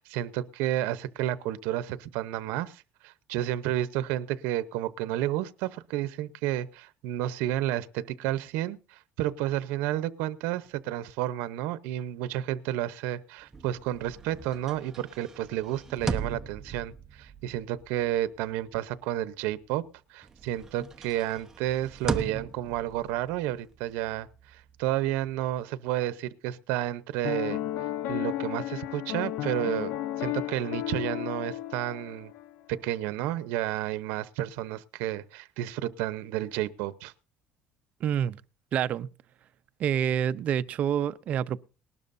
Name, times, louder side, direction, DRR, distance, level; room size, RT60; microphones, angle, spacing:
voice 1, 0.0-19.8 20.1-27.6 28.1-29.9 30.2-32.3 32.7-37.1, right 13 dB, 80° right, 0.8 m, -31 dB
sound 1, 13.4-19.9 20.2-25.6, right 4 dB, 15° right, 1.0 m, -39 dB
Piano, 27.2-32.5, left 13 dB, 70° left, 0.9 m, -33 dB
voice 2, 38.0-38.4 38.7-39.1 39.8-41.6, right 9 dB, 45° right, 0.6 m, -27 dB
19.5 x 12.0 x 2.6 m
cardioid pair, 135°, 3 cm